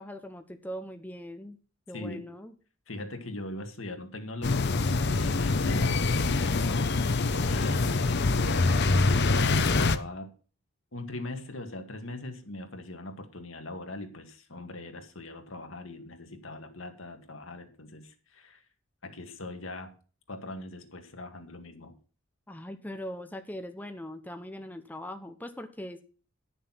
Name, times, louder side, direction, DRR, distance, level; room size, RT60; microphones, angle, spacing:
voice 1, 0.0-1.6 1.9-2.5 22.5-26.0, equal, 10° left, 6 dB, 0.8 m, -40 dB
voice 2, 1.9-2.3 2.9-4.8 5.2-6.0 6.4-10.3 10.9-18.6 19.0-19.9 20.3-21.9, left 2 dB, 75° left, 5 dB, 2.0 m, -40 dB
sound 1, 4.4-10.0, left 3 dB, 55° left, 0.8 m, -25 dB
11.0 x 6.7 x 6.0 m, 0.38 s
head